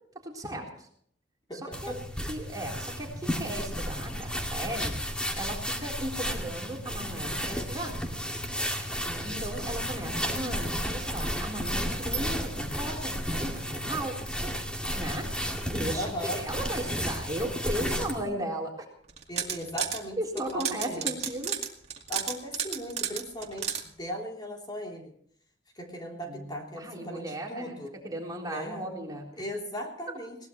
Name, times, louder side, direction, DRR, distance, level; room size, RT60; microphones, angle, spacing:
voice 1, 0.2-0.9 1.5-1.9 2.3-5.0 5.3-8.0 9.0-14.6 14.9-15.3 15.7-18.9 20.2-21.6 26.3-27.8 28.0-29.4, right 1 dB, 20° right, -1 dB, 3.9 m, -36 dB
voice 2, 1.5-2.0 9.0-9.4 15.9-16.4 17.8-18.1 19.3-20.2 20.5-21.1 22.1-25.1 25.8-27.9 28.5-28.9 29.4-30.4, equal, 25° left, 0 dB, 3.4 m, -37 dB
sound 1, 1.7-18.2, equal, 5° left, 2.3 m, -33 dB
sound 2, 19.1-20.0 20.4-23.8, right 8 dB, 35° right, 2.2 m, -32 dB
21.5 x 18.5 x 3.1 m, 0.62 s
head